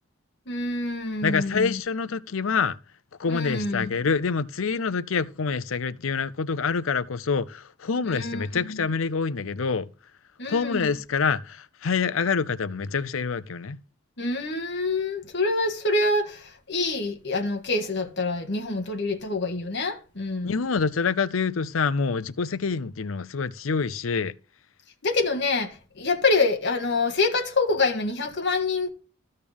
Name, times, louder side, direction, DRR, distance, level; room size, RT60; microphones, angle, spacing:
voice 1, 0.5-1.8 3.3-3.9 8.0-8.8 10.4-10.9 14.2-20.5 25.0-28.9, left 3 dB, 60° left, 1.7 m, -26 dB
voice 2, 1.2-2.8 3.2-9.9 10.5-13.8 20.4-24.3, left 5 dB, 85° left, 0.6 m, -26 dB
13.5 x 6.6 x 3.5 m
head